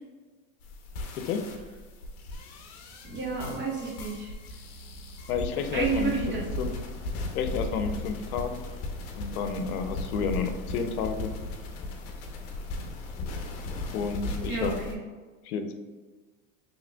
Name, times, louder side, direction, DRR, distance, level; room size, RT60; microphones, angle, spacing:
sound 1, 0.6-14.9, left 2 dB, 50° left, 0.8 m, -37 dB
voice 1, 3.0-4.3 5.7-6.5 14.5-15.0, right 4 dB, 25° right, -3 dB, 1.1 m, -30 dB
voice 2, 5.3-6.7 7.3-8.6 9.2-11.3 13.9-14.7 15.4-15.7, left 5 dB, 85° left, 6 dB, 0.6 m, -31 dB
4.7 x 3.2 x 2.2 m, 1.4 s
supercardioid pair, 120°, 42 cm